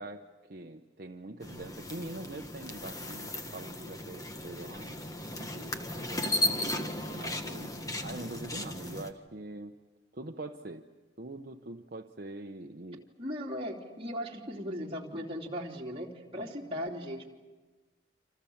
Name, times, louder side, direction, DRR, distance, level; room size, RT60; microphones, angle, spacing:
voice 1, 0.0-5.0 5.4-7.7 8.0-9.7 10.1-10.9 11.2-13.1, right 2 dB, 55° right, 4 dB, 0.9 m, -43 dB
sound 1, 1.4-9.1, left 1 dB, 20° left, 1.5 m, -36 dB
voice 2, 13.2-17.3, equal, 30° right, -2 dB, 3.3 m, -37 dB
28.0 x 27.5 x 7.2 m, 1.3 s
head